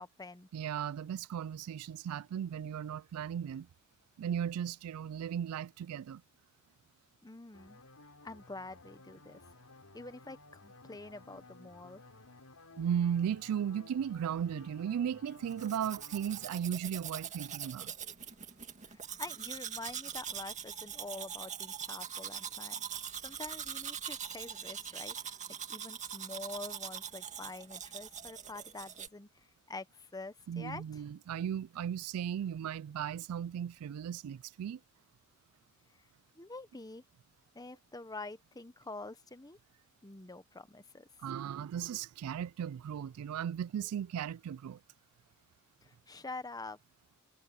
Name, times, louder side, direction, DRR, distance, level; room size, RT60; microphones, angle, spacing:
voice 1, 0.0-0.5 7.2-7.8 8.2-9.4 9.9-12.0 18.8-22.8 23.2-31.0 35.9-36.0 36.4-37.0 37.5-39.6 40.0-41.1 45.8-46.8, left 3 dB, 15° left, 1.0 m, -46 dB
voice 2, 0.5-3.7 4.2-6.2 12.8-17.9 30.5-34.8 41.2-44.8, right 8 dB, 75° right, 0.3 m, -36 dB
sound 1, 7.5-16.5, left 3 dB, 80° left, 4.5 m, -56 dB
Domestic sounds home sounds, 15.5-29.1, right 8 dB, 35° right, 2.0 m, -42 dB
head